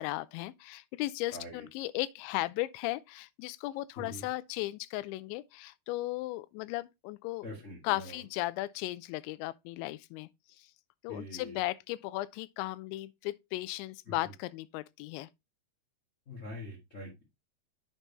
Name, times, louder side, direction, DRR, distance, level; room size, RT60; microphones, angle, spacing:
voice 1, 0.0-7.5 7.8-10.3 10.6-10.7 11.0-15.3, left 18 dB, 85° left, 2.8 m, -36 dB
voice 2, 1.3-1.6 4.0-4.2 7.4-8.2 11.1-11.6 14.1-14.2 16.3-17.2, left 1 dB, 70° left, 0.7 m, -44 dB
7.4 x 5.4 x 4.0 m
omnidirectional pair, 5.3 m